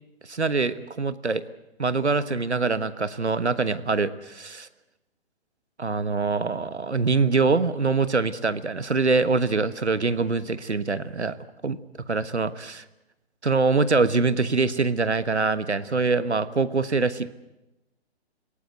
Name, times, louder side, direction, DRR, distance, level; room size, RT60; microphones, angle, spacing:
voice 1, 0.3-1.4 1.8-4.7 5.8-11.4 11.6-11.8 12.1-12.8 13.4-17.3, right 4 dB, 85° right, 14 dB, 1.3 m, -24 dB
26.5 x 18.0 x 8.1 m, 0.94 s
figure-of-eight pair, 130°, 33 cm